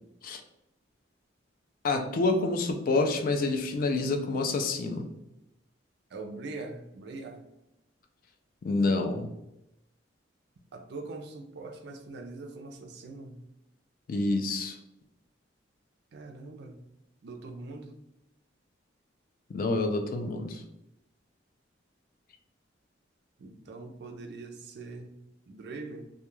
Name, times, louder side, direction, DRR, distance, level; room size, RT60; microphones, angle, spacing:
voice 1, 1.8-5.1 8.6-9.3 14.1-14.8 19.5-20.6, left 3 dB, 50° left, 5 dB, 0.3 m, -28 dB
voice 2, 6.1-7.4 10.7-13.4 16.1-16.8 17.2-17.9 23.4-25.1 25.5-26.0, right 3 dB, 60° right, 4 dB, 0.4 m, -42 dB
2.2 x 2.2 x 3.0 m, 0.88 s
head